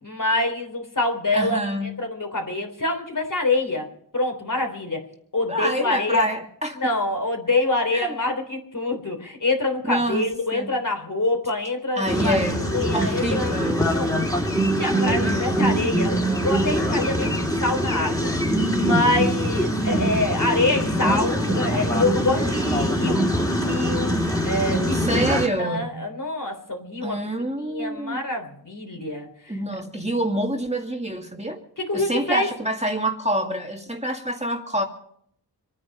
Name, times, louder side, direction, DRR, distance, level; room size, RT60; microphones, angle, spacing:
voice 1, 0.0-1.6 2.0-3.9 4.1-5.0 5.3-6.3 6.8-12.4 12.7-13.5 13.9-14.1 14.8-18.3 18.7-23.2 23.6-24.2 24.4-25.2 25.6-27.2 27.7-29.3 31.8-32.5, left 2 dB, 50° left, 4 dB, 3.5 m, -25 dB
voice 2, 1.3-2.0 5.5-6.8 7.6-8.2 9.9-10.8 12.0-14.0 15.0-15.7 24.9-26.0 27.0-28.2 29.5-31.6 31.9-34.8, right 1 dB, 15° right, 2 dB, 2.0 m, -27 dB
sound 1, 12.0-25.5, equal, 10° left, 3.3 m, -23 dB
25.5 x 9.8 x 5.5 m, 0.66 s
wide cardioid pair, 65°, 41 cm